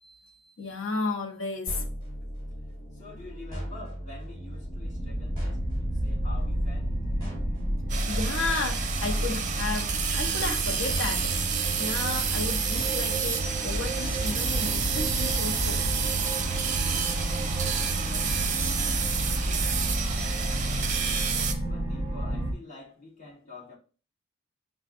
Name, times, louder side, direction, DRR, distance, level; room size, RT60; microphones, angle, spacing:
voice 1, 0.0-1.8 8.1-15.8, left 3 dB, 75° left, 0.9 m, -33 dB
sound 1, 1.7-16.4, equal, 20° left, 2.2 m, -39 dB
voice 2, 2.9-7.0 17.7-23.8, left 2 dB, 40° left, 1.8 m, -48 dB
sound 2, 4.2-22.5, right 1 dB, 10° right, 1.2 m, -31 dB
sound 3, 7.9-21.5, right 7 dB, 40° right, 0.5 m, -30 dB
7.0 x 2.4 x 2.5 m
head